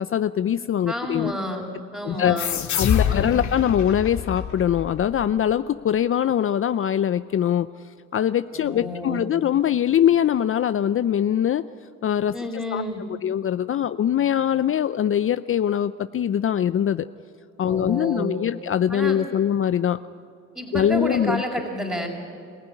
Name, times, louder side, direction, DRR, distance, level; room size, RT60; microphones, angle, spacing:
voice 1, 0.0-1.3 2.0-2.4 2.8-7.7 8.1-11.6 12.0-12.4 12.7-12.8 13.2-17.1 17.6-20.0 20.7-21.4, left 10 dB, 45° left, 13 dB, 0.5 m, -22 dB
voice 2, 0.9-1.7 1.9-2.6 3.0-3.3 8.5-9.2 12.3-13.0 17.7-18.3 18.9-19.2 20.5-22.1, equal, 5° right, -3 dB, 4.0 m, -30 dB
sound 1, 2.4-5.6, left 8 dB, 70° left, 2.0 m, -26 dB
27.0 x 15.5 x 9.9 m, 2.6 s
cardioid pair, 90°, 30 cm